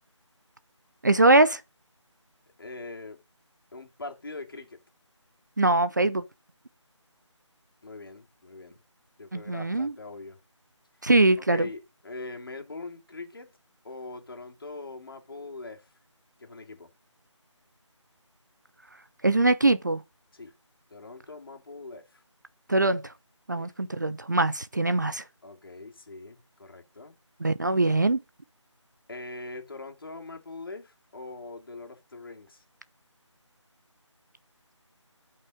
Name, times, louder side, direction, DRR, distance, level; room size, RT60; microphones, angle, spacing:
voice 1, 1.0-1.6 5.6-6.2 9.3-9.9 11.0-11.7 19.2-20.0 22.7-23.0 23.5-25.2 27.4-28.2, right 2 dB, 35° right, 0.5 m, -22 dB
voice 2, 2.6-3.2 3.7-4.8 7.8-8.8 9.2-10.4 11.4-13.5 13.8-15.9 16.4-16.9 20.3-20.5 20.9-22.2 23.5-23.7 25.4-27.1 29.1-32.6, left 3 dB, 45° left, 2.7 m, -42 dB
12.0 x 5.5 x 5.0 m
figure-of-eight pair, 165°, 16 cm